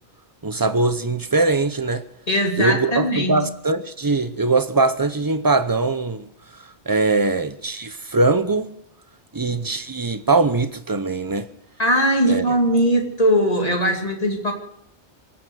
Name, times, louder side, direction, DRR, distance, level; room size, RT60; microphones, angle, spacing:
voice 1, 0.4-2.0 2.6-6.3 6.9-8.7 9.3-11.5 12.3-12.5, right 3 dB, 20° right, 0.8 m, -21 dB
voice 2, 2.3-3.4 11.8-14.5, equal, 35° left, 2.8 m, -20 dB
24.0 x 8.7 x 6.3 m
omnidirectional pair, 1.1 m